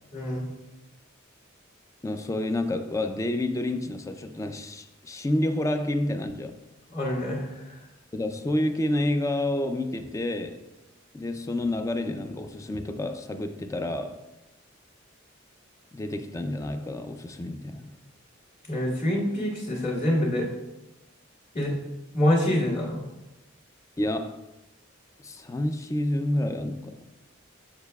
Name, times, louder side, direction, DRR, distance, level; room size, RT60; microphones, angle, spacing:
voice 1, 0.1-0.4 6.9-7.5 18.7-20.5 21.5-21.8 22.1-23.0, left 1 dB, 45° left, -12 dB, 1.7 m, -25 dB
voice 2, 2.0-6.6 8.1-10.6 11.1-14.2 15.9-17.9 24.0-24.4 25.2-27.0, left 1 dB, 15° left, 8 dB, 0.3 m, -29 dB
6.7 x 6.6 x 2.3 m, 0.99 s
head